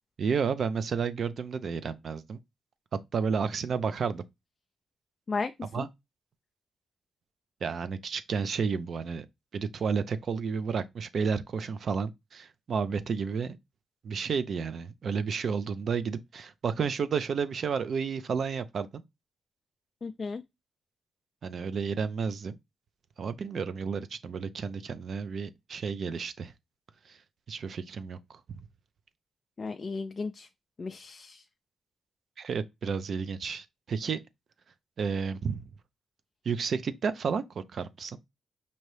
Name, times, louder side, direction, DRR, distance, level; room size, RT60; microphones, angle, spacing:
voice 1, 0.2-2.4 2.9-4.2 5.7-5.9 7.6-9.3 9.5-13.6 14.0-19.0 21.4-22.6 23.2-26.5 27.1-27.2 27.5-28.4 32.4-34.2 35.0-35.6 36.4-38.2, right 6 dB, 55° right, 0.4 m, -31 dB
voice 2, 20.0-20.4 29.6-30.5 30.8-31.4, left 4 dB, 35° left, 0.3 m, -34 dB
5.3 x 2.8 x 3.1 m
wide cardioid pair, 130°, 0 cm